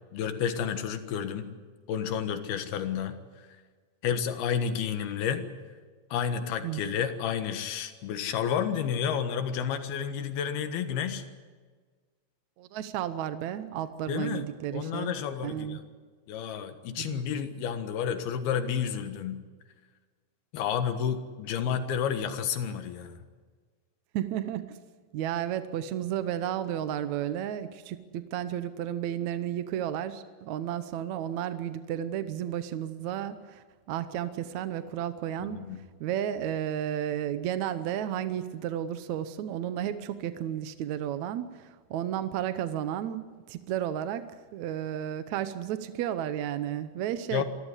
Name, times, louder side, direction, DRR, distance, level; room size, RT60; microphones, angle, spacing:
voice 1, 0.1-1.5 1.9-3.5 4.0-5.5 6.1-11.3 14.1-14.5 14.7-15.8 16.3-19.4 20.5-23.3 35.4-35.8 47.3-47.4, left 8 dB, 85° left, 8 dB, 3.4 m, -31 dB
voice 2, 12.6-15.1 15.4-15.8 17.0-17.2 24.1-24.8 25.1-35.6 36.0-44.3 44.5-47.4, right 10 dB, 70° right, 11 dB, 1.8 m, -33 dB
25.5 x 14.5 x 9.8 m, 1.5 s
omnidirectional pair, 4.3 m